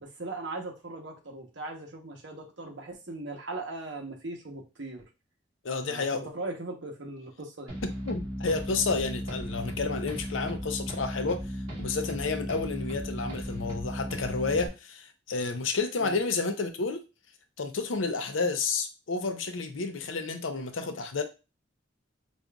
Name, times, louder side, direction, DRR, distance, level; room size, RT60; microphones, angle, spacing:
voice 1, 0.0-5.0 5.9-7.7 16.0-16.2, right 2 dB, 70° right, 1.0 m, -39 dB
voice 2, 5.6-6.3 7.8-11.4 11.8-17.0 17.6-21.2, left 4 dB, 85° left, 0.6 m, -30 dB
sound 1, 7.7-14.7, equal, 25° right, 2.0 m, -36 dB
5.1 x 2.5 x 2.3 m
head